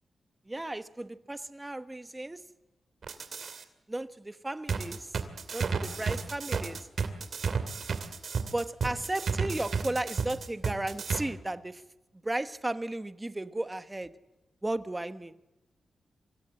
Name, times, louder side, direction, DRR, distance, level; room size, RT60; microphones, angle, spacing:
voice 1, 0.5-2.4 3.9-5.1 5.5-6.8 8.5-11.8 12.2-14.1 14.6-15.3, right 1 dB, 15° right, 11 dB, 1.2 m, -34 dB
sound 1, 3.0-3.6 4.7-11.2, right 5 dB, 65° right, 2.4 m, -32 dB
25.0 x 17.0 x 7.7 m, 1.1 s
cardioid pair, 85°, 0 cm